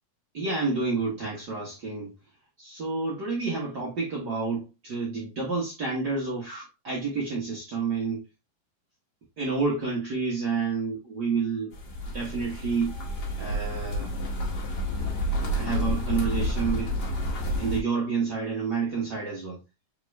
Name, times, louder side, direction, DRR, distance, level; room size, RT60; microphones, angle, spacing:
voice 1, 0.3-2.1 2.6-8.3 9.4-11.7 12.1-12.9 13.4-14.1 15.5-17.0 17.6-19.6, right 4 dB, 80° right, 0.9 m, -29 dB
sound 1, 11.7-17.8, equal, 55° left, 1.1 m, -29 dB
4.4 x 3.7 x 3.0 m
omnidirectional pair, 3.7 m